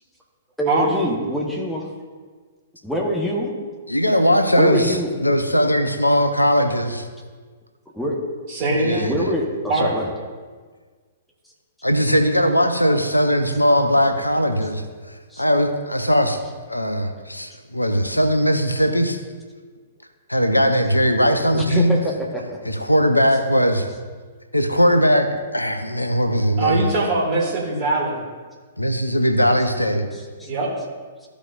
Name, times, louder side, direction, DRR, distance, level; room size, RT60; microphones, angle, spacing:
voice 1, 0.6-1.9 2.8-3.5 4.6-5.1 7.9-8.2 9.0-10.1 15.3-15.4 21.5-22.7 30.4-30.5, equal, ahead, -3 dB, 1.3 m, -25 dB
voice 2, 3.9-7.1 8.6-9.1 11.8-14.8 15.4-16.4 16.7-19.2 20.3-22.0 22.7-23.9 24.5-26.9 28.8-30.1, equal, 85° left, 7 dB, 0.7 m, -19 dB
voice 3, 8.5-9.2 9.7-9.9 26.6-28.2 30.4-30.7, right 2 dB, 35° right, -3 dB, 2.2 m, -22 dB
14.0 x 5.1 x 2.5 m, 1.5 s
figure-of-eight pair, 110°, 0 cm